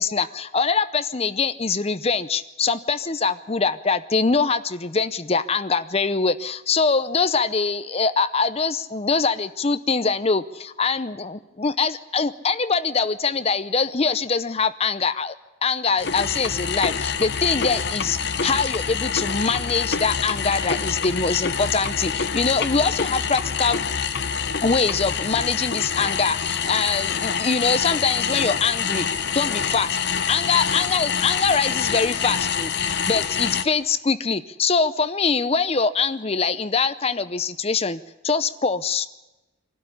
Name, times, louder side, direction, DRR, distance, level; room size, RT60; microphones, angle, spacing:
voice 1, 0.0-15.4 15.6-23.8 24.6-29.1 29.3-30.0 30.3-32.7 33.1-39.1, left 4 dB, 30° left, 13 dB, 0.6 m, -23 dB
sound 1, 16.0-33.6, left 6 dB, 55° left, 0.9 m, -26 dB
23.5 x 12.5 x 9.9 m, 1.1 s
head